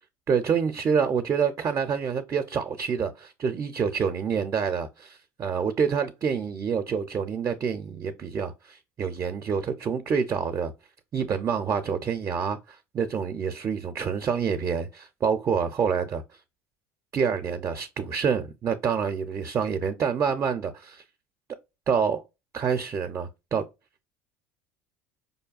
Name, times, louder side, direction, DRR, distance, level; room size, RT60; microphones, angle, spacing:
voice 1, 0.3-10.7 11.1-16.2 17.1-21.0 21.9-22.2 22.5-23.7, right 6 dB, 35° right, 0.5 m, -27 dB
5.1 x 2.2 x 2.4 m
hypercardioid pair, 75°, 8 cm